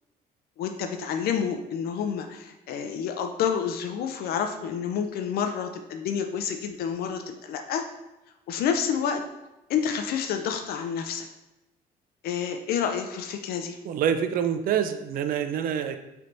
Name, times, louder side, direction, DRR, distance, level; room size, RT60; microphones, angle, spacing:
voice 1, 0.6-7.8 8.5-9.2 9.7-11.3 12.2-13.8, left 7 dB, 65° left, 5 dB, 0.4 m, -29 dB
voice 2, 13.8-16.0, right 8 dB, 60° right, 9 dB, 0.4 m, -26 dB
4.2 x 3.3 x 2.6 m, 0.97 s
cardioid pair, 110°, 17 cm